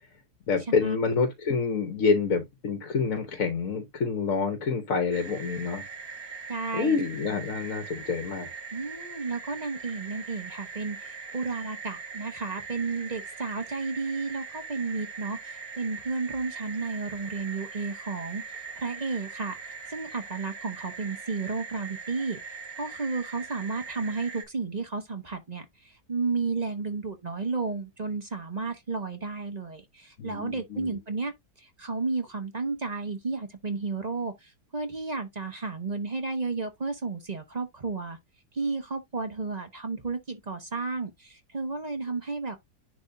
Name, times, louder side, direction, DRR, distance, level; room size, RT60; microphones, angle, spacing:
voice 1, 0.5-5.8 6.7-8.5 30.2-31.0, left 5 dB, 60° left, 1.3 m, -27 dB
sound 1, 5.1-24.4, right 5 dB, 65° right, 1.7 m, -41 dB
voice 2, 6.5-7.0 8.7-38.2 38.5-42.6, right 4 dB, 30° right, 0.9 m, -32 dB
10.5 x 3.5 x 2.6 m
omnidirectional pair, 1.7 m